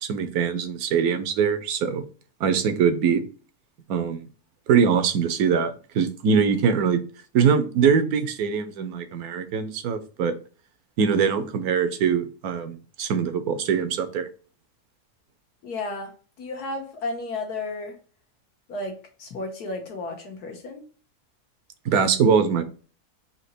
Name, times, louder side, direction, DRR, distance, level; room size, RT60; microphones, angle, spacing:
voice 1, 0.0-2.0 2.4-3.2 3.9-4.2 4.7-7.0 7.3-10.3 11.0-14.3 21.8-22.6, right 6 dB, 75° right, 1.1 m, -22 dB
voice 2, 15.6-16.1 16.4-18.0 18.7-20.8, left 2 dB, 75° left, 1.6 m, -33 dB
4.2 x 2.8 x 4.3 m
omnidirectional pair, 1.7 m